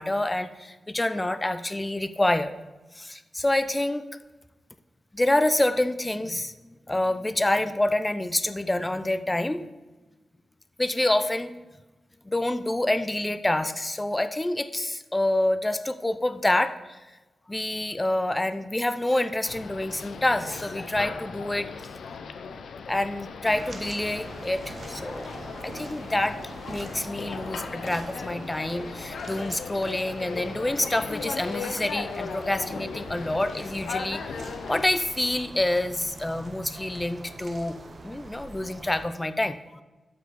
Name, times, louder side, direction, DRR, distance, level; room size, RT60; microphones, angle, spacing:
voice 1, 0.0-2.5 2.9-4.1 5.1-6.5 6.9-9.7 10.8-11.5 12.2-17.0 17.5-21.7 22.9-25.3 25.6-26.4 26.7-34.2 34.7-37.8 38.0-39.8, left 1 dB, 10° left, 11 dB, 0.4 m, -27 dB
sound 1, 19.4-34.9, left 5 dB, 85° left, 0.5 m, -37 dB
sound 2, 23.4-39.1, right 2 dB, 40° right, 0.8 m, -43 dB
12.5 x 4.6 x 4.1 m, 1.1 s
wide cardioid pair, 170°, 0 cm